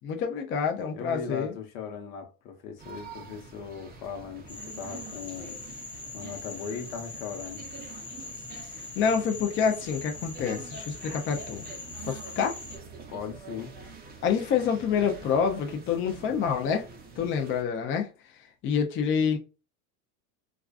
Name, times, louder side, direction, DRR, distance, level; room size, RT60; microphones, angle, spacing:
voice 1, 0.0-1.5 9.0-11.6 12.0-12.6 14.2-16.9 17.2-18.1 18.6-19.4, left 6 dB, 30° left, 0.4 m, -27 dB
voice 2, 0.9-5.6 6.1-7.6 13.1-13.8, left 6 dB, 70° left, 0.9 m, -38 dB
sound 1, 2.8-17.6, right 4 dB, 20° right, 0.6 m, -46 dB
Frog, 4.5-12.8, left 3 dB, 10° left, 0.8 m, -42 dB
2.3 x 2.2 x 2.3 m
supercardioid pair, 105°, 44 cm